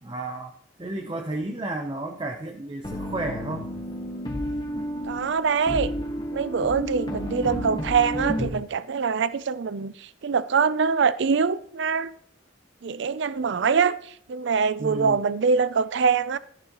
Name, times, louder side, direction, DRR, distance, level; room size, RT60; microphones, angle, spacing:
voice 1, 0.0-0.5 0.8-3.7 14.8-15.2, right 2 dB, 25° right, 0.8 m, -32 dB
sound 1, 2.8-8.5, equal, 25° left, 1.3 m, -31 dB
voice 2, 5.0-5.9 6.3-12.1 12.8-16.4, right 5 dB, 65° right, 0.4 m, -24 dB
13.5 x 10.5 x 3.0 m
head